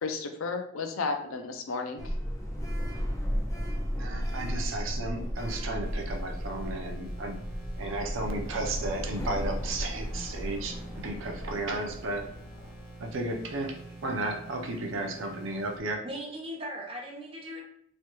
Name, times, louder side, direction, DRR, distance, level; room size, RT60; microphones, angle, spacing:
voice 1, 0.0-2.1, left 4 dB, 90° left, 5 dB, 0.5 m, -33 dB
Sliding door, 2.0-11.5, equal, 15° left, 0.4 m, -34 dB
voice 2, 4.0-7.4 7.8-12.3 13.0-16.1, right 2 dB, 75° right, 2 dB, 0.6 m, -34 dB
sound 1, 5.8-15.8, right 2 dB, ahead, 1.0 m, -47 dB
sound 2, 8.3-13.7, equal, 65° left, 0.8 m, -45 dB
voice 3, 16.0-17.6, equal, 25° right, -1 dB, 0.6 m, -38 dB
3.1 x 2.3 x 2.9 m, 0.68 s
head